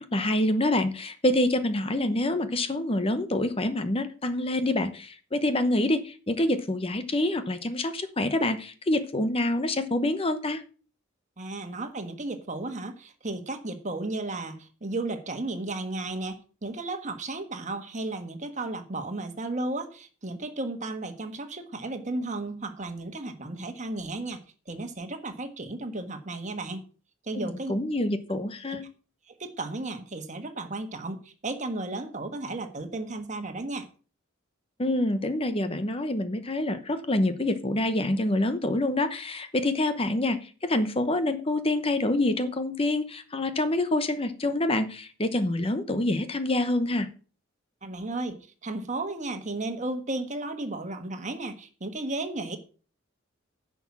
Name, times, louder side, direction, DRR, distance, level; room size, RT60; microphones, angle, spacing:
voice 1, 0.1-10.6 27.3-28.8 34.8-47.1, left 1 dB, 30° left, 10 dB, 0.9 m, -26 dB
voice 2, 11.4-26.8 27.2-27.7 28.6-28.8 29.3-33.9 47.8-52.6, right 2 dB, 35° right, 7 dB, 1.5 m, -34 dB
10.5 x 6.1 x 7.2 m, 0.39 s
head